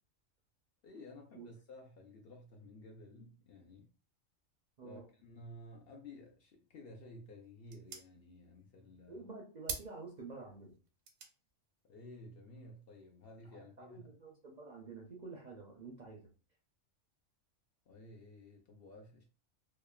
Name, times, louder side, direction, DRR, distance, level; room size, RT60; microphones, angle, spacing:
voice 1, 0.8-3.9 4.8-9.2 11.8-14.1 17.9-19.2, left 1 dB, 60° left, 0.7 m, -54 dB
sound 1, 6.7-13.5, right 5 dB, 85° right, 1.0 m, -51 dB
voice 2, 9.1-10.7 13.8-16.3, right 4 dB, 55° right, 0.5 m, -49 dB
2.9 x 2.0 x 2.3 m
omnidirectional pair, 1.3 m